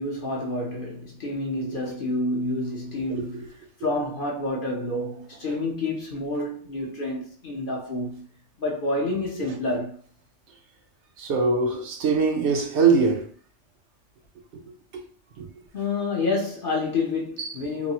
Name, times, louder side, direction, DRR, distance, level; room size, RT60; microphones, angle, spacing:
voice 1, 0.0-3.5 3.8-8.2 8.6-10.0 15.7-17.9, left 2 dB, 50° left, 0.8 m, -28 dB
voice 2, 11.2-13.3 14.9-15.0 15.4-15.5 17.4-17.5, right 4 dB, 70° right, 0.9 m, -22 dB
3.9 x 2.0 x 2.7 m
omnidirectional pair, 1.3 m